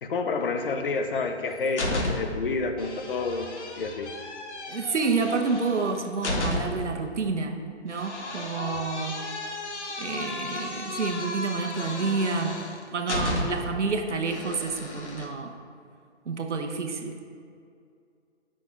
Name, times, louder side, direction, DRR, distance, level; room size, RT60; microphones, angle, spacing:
voice 1, 0.0-3.5 3.8-4.1, left 4 dB, 50° left, 6 dB, 0.8 m, -29 dB
sound 1, 1.2-2.5 2.8-6.9 7.9-13.8 14.3-15.3, left 2 dB, 75° left, 1.4 m, -34 dB
voice 2, 4.7-9.2 10.0-12.6 12.9-15.5 16.3-17.2, right 4 dB, 80° right, 4 dB, 1.1 m, -29 dB
7.9 x 6.2 x 4.7 m, 2.3 s
hypercardioid pair, 145°, 35 cm